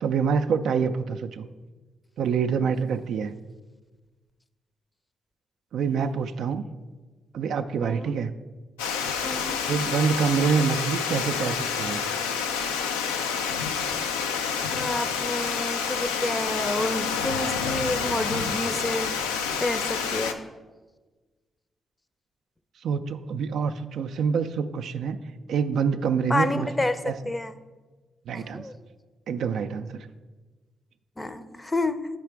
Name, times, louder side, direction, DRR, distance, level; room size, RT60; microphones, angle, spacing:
voice 1, 0.0-1.5 2.2-3.3 5.7-6.6 7.3-8.3 9.7-12.0 22.8-25.2 25.5-26.7 27.0-27.1 28.3-28.7 29.3-30.1, right 6 dB, 70° right, 8 dB, 0.3 m, -26 dB
voice 2, 7.8-8.1 9.2-9.7 14.7-19.2 19.6-20.4 26.3-27.5 28.3-28.7 31.2-32.1, left 1 dB, 20° left, 12 dB, 0.5 m, -29 dB
Water, 8.8-20.3, left 6 dB, 90° left, 0.3 m, -28 dB
7.5 x 4.9 x 4.5 m, 1.3 s
hypercardioid pair, 40°, 0 cm